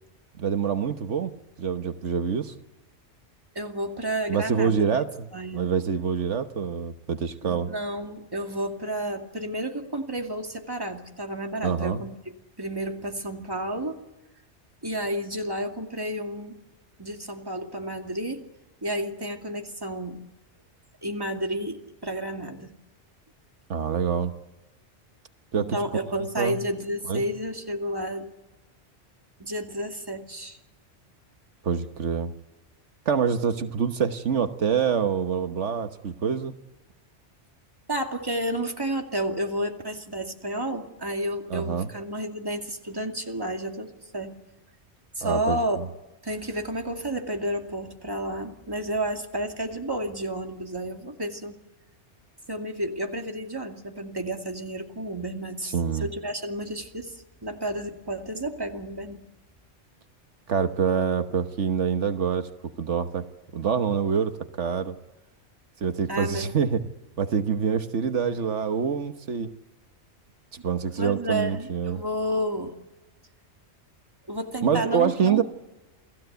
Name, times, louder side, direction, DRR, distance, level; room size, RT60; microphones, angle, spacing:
voice 1, 0.4-1.3 1.6-2.5 4.3-5.3 5.5-7.7 11.6-12.0 23.7-24.3 25.5-25.8 26.4-26.6 27.1-27.2 31.6-32.3 33.1-36.5 41.5-41.9 45.2-45.8 55.6-56.1 60.5-62.5 62.8-63.3 63.5-65.0 65.8-66.9 67.2-69.5 70.6-72.0 74.6-75.4, right 6 dB, 85° right, 8 dB, 1.5 m, -26 dB
voice 2, 3.5-5.0 5.3-5.7 7.4-12.2 12.6-14.0 14.8-16.6 17.0-18.4 18.8-20.2 21.0-22.7 25.5-28.3 29.4-30.6 37.9-44.4 45.2-45.8 46.2-51.6 52.5-55.7 56.0-59.3 66.1-66.5 71.0-72.7 74.3-75.4, right 1 dB, 20° right, 3 dB, 2.4 m, -31 dB
28.5 x 18.0 x 8.1 m, 1.0 s
omnidirectional pair, 1.2 m